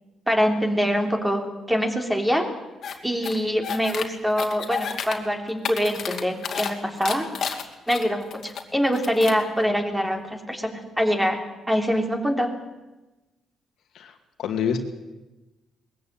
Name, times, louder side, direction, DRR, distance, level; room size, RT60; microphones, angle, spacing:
voice 1, 0.3-2.4 3.0-7.3 7.9-12.5, equal, 5° right, 3 dB, 3.5 m, -24 dB
sound 1, 2.8-2.9 3.2-4.0 4.4-5.1 5.5-6.7 7.0-8.6 8.9-9.4, left 7 dB, 60° left, 2.5 m, -31 dB
voice 2, 13.9-14.9, left 6 dB, 75° left, 5 dB, 2.4 m, -28 dB
21.0 x 14.5 x 9.0 m, 1.1 s
cardioid pair, 90°, 0 cm